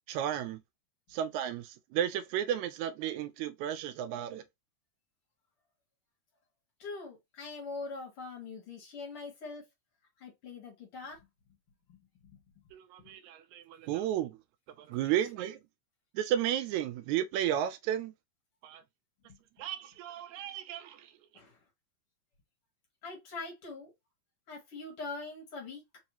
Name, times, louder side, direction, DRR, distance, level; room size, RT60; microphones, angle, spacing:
voice 1, 0.1-0.6 1.1-4.4 12.7-14.4 14.8-15.6 16.1-18.1 18.6-18.8 19.6-21.1, right 11 dB, 80° right, 1.9 m, -33 dB
voice 2, 6.8-9.6 10.2-11.3 11.9-12.6 19.2-19.4 21.3-21.6 23.0-23.9 24.5-25.8, left 3 dB, 55° left, 2.1 m, -43 dB
4.7 x 2.7 x 2.9 m
omnidirectional pair, 3.4 m